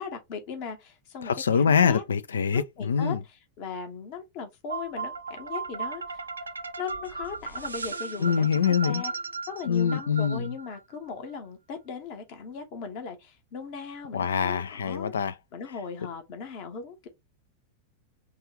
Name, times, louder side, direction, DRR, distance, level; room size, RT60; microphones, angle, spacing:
voice 1, 0.0-2.0 2.5-3.2 3.6-6.2 6.8-9.1 9.5-15.1 15.5-17.1, left 6 dB, 45° left, 1.1 m, -38 dB
voice 2, 1.2-3.2 8.2-9.0 9.7-10.5 14.1-15.3, left 6 dB, 70° left, 0.4 m, -24 dB
sound 1, 4.7-10.8, right 4 dB, 80° right, 0.4 m, -36 dB
5.4 x 2.4 x 2.9 m
figure-of-eight pair, 90°, 0 cm